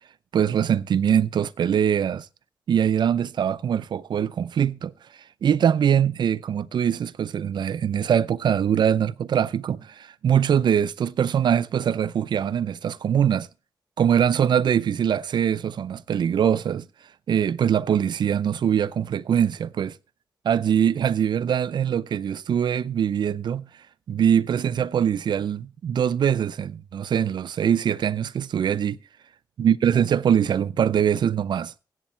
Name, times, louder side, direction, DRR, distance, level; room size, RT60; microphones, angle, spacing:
voice 1, 0.3-2.3 2.7-4.9 5.4-13.5 14.0-16.9 17.3-20.0 20.4-23.7 24.1-29.0 29.6-31.7, right 8 dB, 70° right, 0.5 m, -22 dB
15.5 x 8.1 x 4.4 m
cardioid pair, 70°, 8 cm